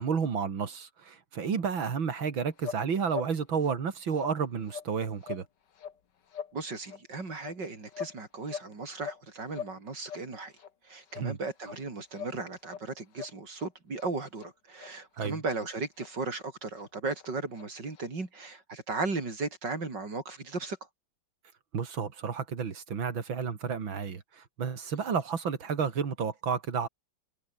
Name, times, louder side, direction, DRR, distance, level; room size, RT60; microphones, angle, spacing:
voice 1, 0.0-5.4 11.2-11.4 15.2-15.4 21.7-26.9, right 6 dB, 90° right, 3.1 m, -31 dB
sound 1, 2.1-2.3 2.6-2.8 3.1-3.3 3.6-3.8 4.1-4.4 4.6-4.9 5.2-5.5 5.7-6.0 6.3-6.5 6.8-7.0 7.4-8.2 8.4-9.2 9.5-9.7 10.0-10.3 10.6-10.7 11.1-11.3 11.6-11.8 12.1-12.4 12.6-12.8 13.1-13.7 14.0-14.1 14.4-14.5 14.8-14.9 15.2-15.3 15.6-15.7 16.0-16.1 16.4-16.5 16.8-16.9 17.1-17.3 17.5-17.7 18.0-18.1, left 7 dB, 65° left, 2.2 m, -42 dB
voice 2, 6.5-10.5 10.8-20.8, right 3 dB, 65° right, 5.1 m, -36 dB
omnidirectional pair, 2.1 m